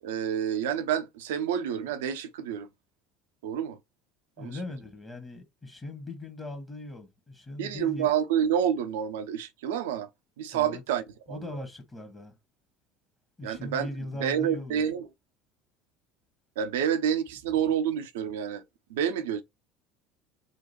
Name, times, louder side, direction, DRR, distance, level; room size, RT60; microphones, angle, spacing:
voice 1, 0.0-2.7 3.4-3.8 4.4-4.6 7.6-10.1 10.4-11.4 13.4-13.9 14.2-15.1 16.6-18.6 18.9-19.4, right 9 dB, 65° right, 0.6 m, -28 dB
voice 2, 4.4-8.1 10.5-10.8 11.3-12.3 13.4-14.8, left 2 dB, 20° left, 1.4 m, -39 dB
3.8 x 2.5 x 4.3 m
figure-of-eight pair, 65°, 0 cm